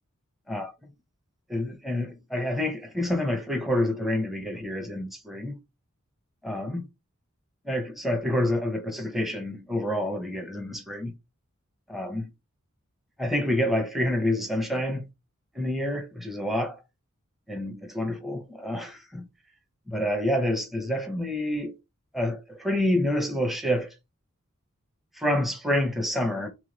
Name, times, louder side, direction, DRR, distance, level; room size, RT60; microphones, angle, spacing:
voice 1, 1.5-5.6 6.4-6.8 7.7-11.1 11.9-12.3 13.2-15.0 15.5-16.8 17.5-19.2 19.9-21.7 22.1-23.9 25.2-26.5, left 1 dB, ahead, 0.6 m, -28 dB
3.4 x 3.2 x 3.9 m
head